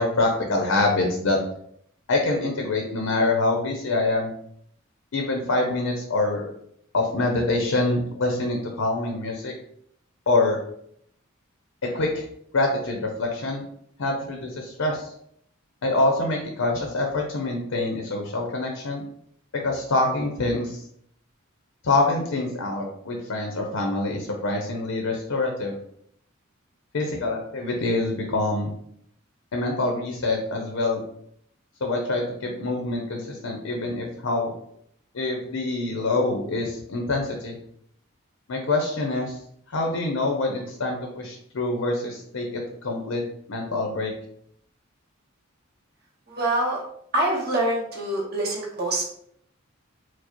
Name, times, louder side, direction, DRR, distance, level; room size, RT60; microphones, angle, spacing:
voice 1, 0.0-1.4 2.1-4.3 5.1-6.5 6.9-9.5 10.3-10.6 11.8-12.2 12.5-13.6 14.0-15.1 15.8-19.0 19.5-20.8 21.8-25.8 26.9-28.7 29.5-31.0 31.8-34.5 35.1-37.6 38.5-39.4 39.7-43.2 43.5-44.1, left 2 dB, 70° left, 1 dB, 0.6 m, -25 dB
voice 2, 46.3-46.8 47.1-49.0, right 1 dB, 50° right, -3 dB, 1.0 m, -25 dB
4.6 x 2.0 x 2.9 m, 0.69 s
head